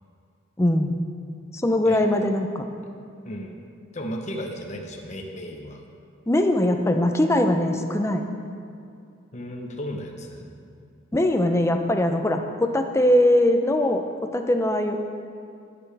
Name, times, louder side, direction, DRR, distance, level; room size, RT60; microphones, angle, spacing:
voice 1, 0.6-1.0 1.5-2.6 6.3-8.2 11.1-14.0 14.3-15.0, left 1 dB, 15° left, 5 dB, 0.5 m, -21 dB
voice 2, 3.2-3.6 3.9-5.8 9.3-10.5, equal, 40° left, 2 dB, 0.9 m, -34 dB
19.5 x 6.9 x 3.4 m, 2.5 s
head